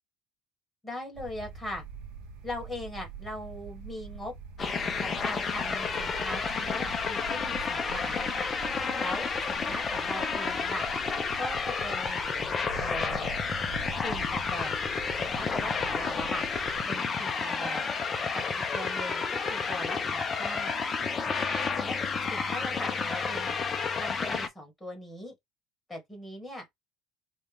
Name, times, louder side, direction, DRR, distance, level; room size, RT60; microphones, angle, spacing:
voice 1, 0.8-1.8 2.4-4.3 5.0-8.2 9.0-10.9 11.4-12.2 12.8-13.3 13.9-14.8 15.2-16.4 16.9-17.9 18.3-18.4 18.7-20.7 21.8-22.0 22.3-23.6 24.0-25.3 25.9-26.6, left 1 dB, 10° left, 1.9 m, -39 dB
sound 1, 1.1-16.9, right 4 dB, 70° right, 0.9 m, -44 dB
sound 2, 4.6-24.5, left 5 dB, 25° left, 0.6 m, -31 dB
4.3 x 2.5 x 3.6 m
cardioid pair, 155°, 0 cm